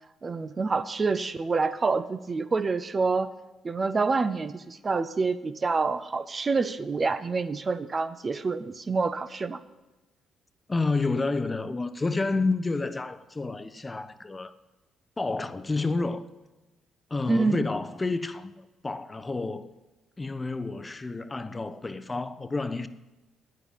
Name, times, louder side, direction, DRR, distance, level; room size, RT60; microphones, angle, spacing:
voice 1, 0.2-3.3 3.6-9.6 17.3-17.6, right 4 dB, 35° right, 0.7 m, -27 dB
voice 2, 10.7-14.5 15.2-16.3 17.1-19.7 20.2-22.9, left 3 dB, 25° left, 0.7 m, -29 dB
9.1 x 8.0 x 8.8 m
supercardioid pair, 60°, 0 cm